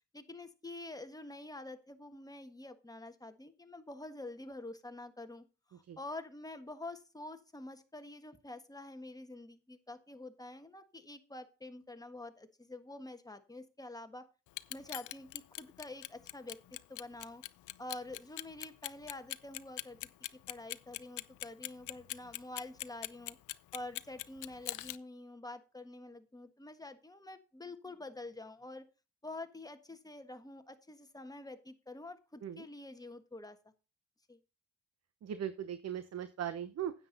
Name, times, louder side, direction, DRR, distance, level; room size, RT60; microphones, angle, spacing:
voice 1, 0.1-14.2 14.7-16.6 16.9-17.4 17.8-20.0 20.5-23.4 23.7-28.8 29.2-33.6 34.3-34.4, left 2 dB, 10° left, 8 dB, 1.5 m, -47 dB
Clock, 14.5-25.0, left 16 dB, 75° left, 0.6 m, -41 dB
voice 2, 35.2-36.9, right 9 dB, 60° right, 12 dB, 1.0 m, -39 dB
9.8 x 8.5 x 4.0 m, 0.31 s
cardioid pair, 90°, 30 cm